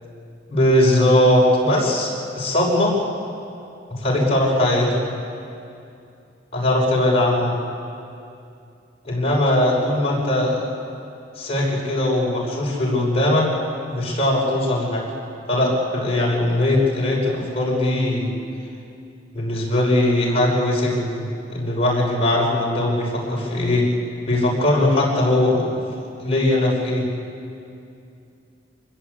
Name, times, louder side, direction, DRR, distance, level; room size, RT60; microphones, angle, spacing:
voice 1, 0.5-3.0 4.0-5.1 6.5-7.6 9.0-10.6 11.4-13.5 13.9-15.1 15.5-18.4 19.3-23.9 24.3-25.8 26.2-27.1, left 1 dB, 35° left, -3 dB, 6.2 m, -20 dB
25.5 x 20.5 x 8.4 m, 2.6 s
head